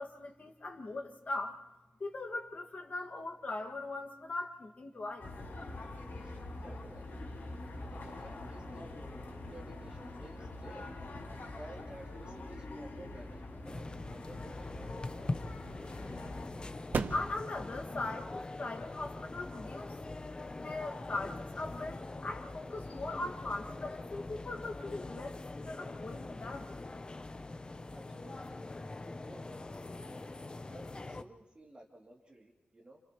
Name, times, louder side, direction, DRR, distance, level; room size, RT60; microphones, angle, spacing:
voice 1, 0.0-1.6 2.0-5.3 17.1-20.0 20.6-25.4 25.6-26.7, left 2 dB, 50° left, 0 dB, 1.8 m, -40 dB
sound 1, 5.2-16.5, left 2 dB, 70° left, 5.6 m, -44 dB
voice 2, 6.2-7.3 7.8-8.9 9.4-10.9 11.5-14.9 27.9-28.6 29.3-29.7 30.6-33.0, right 1 dB, 30° right, -1 dB, 2.7 m, -54 dB
sound 2, 13.7-31.2, left 2 dB, 25° left, 0.6 m, -43 dB
sound 3, 16.9-21.6, right 4 dB, 65° right, 0.8 m, -43 dB
30.0 x 29.0 x 3.0 m, 1.0 s
wide cardioid pair, 140°, 3 cm